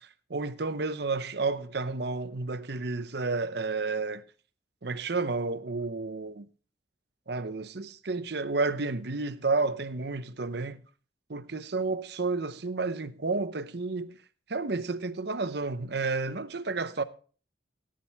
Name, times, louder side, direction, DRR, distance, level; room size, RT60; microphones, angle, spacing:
voice 1, 0.3-4.2 4.8-6.4 7.3-10.8 11.3-14.2 14.5-17.0, right 3 dB, 60° right, 0.8 m, -31 dB
15.5 x 10.5 x 3.4 m
head